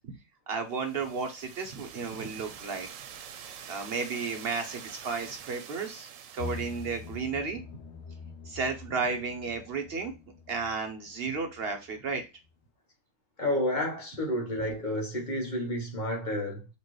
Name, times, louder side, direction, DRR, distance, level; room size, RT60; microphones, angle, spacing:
voice 1, 0.5-2.9 3.7-6.1 6.3-7.6 8.5-10.1 10.5-12.2, right 4 dB, 55° right, 0.8 m, -33 dB
sound 1, 0.7-7.3, right 8 dB, 90° right, 1.0 m, -46 dB
sound 2, 6.4-12.2 12.4-12.5, left 4 dB, 65° left, 0.9 m, -45 dB
voice 2, 13.4-16.7, left 1 dB, 40° left, 1.1 m, -30 dB
4.2 x 3.0 x 3.0 m
omnidirectional pair, 1.3 m